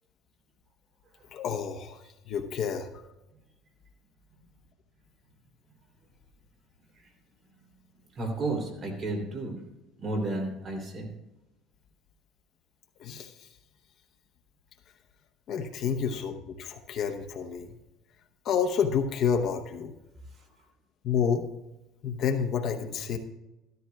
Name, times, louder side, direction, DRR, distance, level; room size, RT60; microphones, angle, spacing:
voice 1, 1.3-2.0 2.3-2.9 13.0-13.3 15.5-17.8 18.4-19.9 21.0-21.5 22.0-23.2, left 7 dB, 50° left, 5 dB, 0.9 m, -29 dB
voice 2, 8.1-9.5 10.0-11.1, right 2 dB, 35° right, 2 dB, 3.3 m, -32 dB
14.0 x 13.5 x 2.3 m, 0.98 s
cardioid pair, 155°, 0 cm